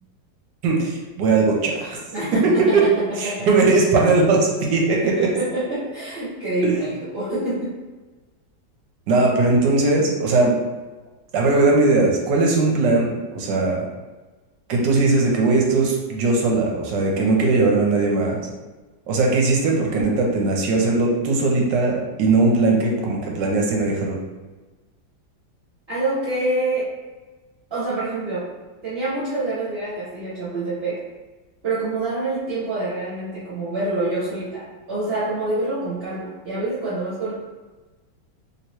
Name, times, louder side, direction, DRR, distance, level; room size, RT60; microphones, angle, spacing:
voice 1, 0.6-2.0 2.3-2.9 3.2-5.3 6.6-6.7 9.1-10.6 11.3-13.9 14.7-18.4 19.1-24.2, right 3 dB, 75° right, -1 dB, 1.2 m, -19 dB
voice 2, 2.1-2.9 3.2-3.5 5.0-7.7 22.4-22.8 25.9-26.9 27.7-28.5 28.8-31.0 31.6-37.3, right 2 dB, 40° right, -10 dB, 1.0 m, -26 dB
3.2 x 2.9 x 3.0 m, 1.2 s
omnidirectional pair, 2.1 m